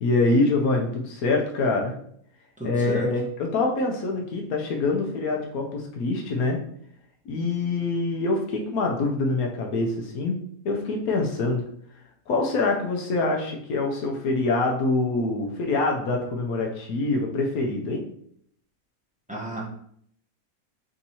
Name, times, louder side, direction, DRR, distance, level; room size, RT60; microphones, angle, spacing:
voice 1, 0.0-1.9 2.6-6.6 7.3-11.6 12.3-18.0, left 3 dB, 85° left, 1 dB, 1.1 m, -25 dB
voice 2, 2.6-3.1 19.3-19.6, right 1 dB, 5° right, -3 dB, 0.7 m, -32 dB
3.5 x 2.9 x 4.0 m, 0.66 s
omnidirectional pair, 1.5 m